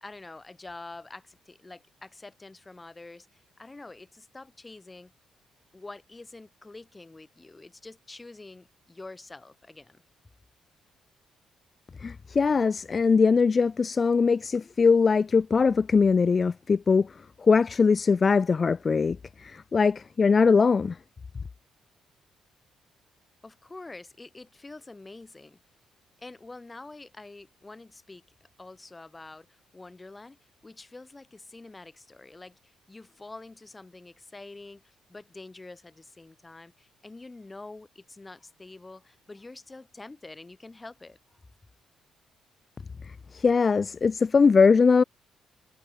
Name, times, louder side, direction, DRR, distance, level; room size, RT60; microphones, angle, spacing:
voice 1, 0.0-5.1 5.7-10.0 23.4-25.6 26.2-41.4, left 2 dB, 20° left, 3.2 m, -46 dB
voice 2, 12.0-17.1 17.4-21.0 43.3-45.0, left 5 dB, 35° left, 0.6 m, -21 dB
cardioid pair, 90°, 0 cm